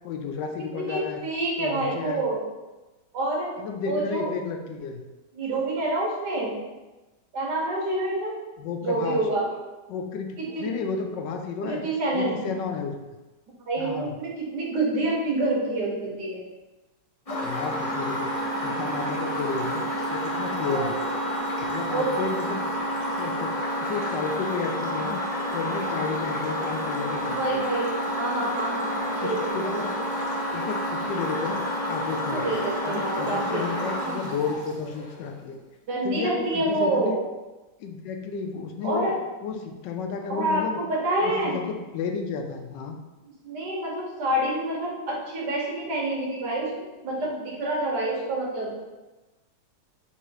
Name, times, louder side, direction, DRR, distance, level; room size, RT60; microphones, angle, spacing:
voice 1, 0.0-1.2 1.6-2.3 3.6-5.0 8.6-9.2 9.9-10.3 10.6-11.8 12.1-13.0 13.8-14.1 17.4-18.3 18.6-21.0 21.7-22.6 23.2-23.5 23.8-25.2 25.5-27.6 29.2-30.1 30.5-32.6 32.8-35.6 36.0-37.1 37.8-39.1 39.4-40.8 41.2-43.0, left 5 dB, 85° left, 4 dB, 1.3 m, -32 dB
voice 2, 0.6-2.4 3.1-3.6 3.9-4.3 5.3-6.6 7.3-8.4 8.8-9.6 10.4-10.7 11.6-12.4 13.7-16.4 17.3-17.4 20.7-21.0 21.9-22.2 27.3-29.9 32.3-34.2 35.9-37.2 38.8-39.1 40.3-41.6 43.4-46.7 47.0-48.8, right 2 dB, 70° right, -2 dB, 1.7 m, -27 dB
sound 1, 17.3-35.2, equal, 35° left, 0.6 m, -29 dB
3.9 x 2.8 x 4.6 m, 1.1 s
omnidirectional pair, 1.9 m